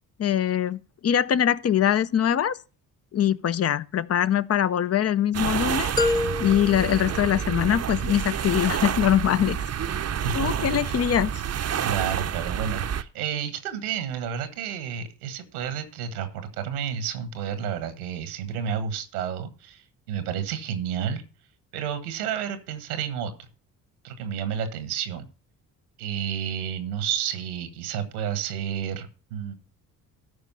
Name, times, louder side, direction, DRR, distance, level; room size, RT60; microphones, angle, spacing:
voice 1, 0.2-2.6 3.1-5.9 6.4-9.6 10.3-11.3, left 10 dB, 35° left, 0.6 m, -23 dB
sound 1, 5.3-13.0, right 9 dB, 35° right, 0.7 m, -29 dB
sound 2, 6.0-8.0, left 2 dB, 10° left, 1.1 m, -28 dB
voice 2, 10.2-11.0 11.8-21.2 21.7-23.3 24.0-25.3 26.0-29.5, right 8 dB, 90° right, 1.4 m, -31 dB
13.0 x 5.2 x 5.5 m
hypercardioid pair, 55°, 43 cm